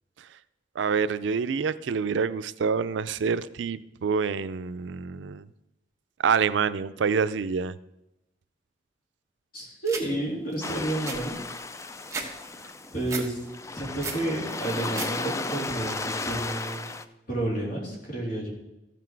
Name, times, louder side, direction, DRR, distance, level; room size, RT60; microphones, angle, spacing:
voice 1, 0.8-5.5 6.2-7.8, right 6 dB, 85° right, 15 dB, 0.4 m, -27 dB
voice 2, 9.5-11.4 12.9-13.4 13.7-16.8 17.3-18.5, right 1 dB, 55° left, -3 dB, 3.4 m, -30 dB
sound 1, 9.9-10.1 10.5-10.6 10.9-12.3 12.6-13.3 13.7-14.2 14.6-15.1 15.4-15.9, right 4 dB, 15° right, 1.4 m, -35 dB
sound 2, 10.6-17.0, left 3 dB, 15° left, 0.4 m, -34 dB
14.0 x 6.0 x 4.6 m, 0.94 s
head